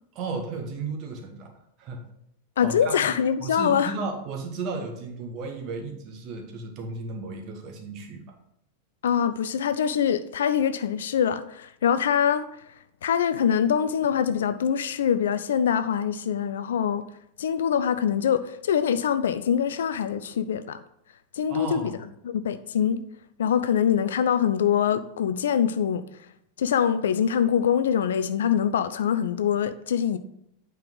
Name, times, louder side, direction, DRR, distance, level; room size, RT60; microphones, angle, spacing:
voice 1, 0.1-1.5 1.8-2.0 2.6-8.2 21.5-22.0, right 4 dB, 40° right, 1.7 m, -34 dB
voice 2, 2.6-3.9 9.0-12.5 13.0-17.0 17.4-20.8 21.3-21.9 22.2-23.0 23.4-26.0 26.6-30.2, left 8 dB, 60° left, 0.4 m, -24 dB
8.8 x 5.4 x 4.0 m
figure-of-eight pair, 90°, 0 cm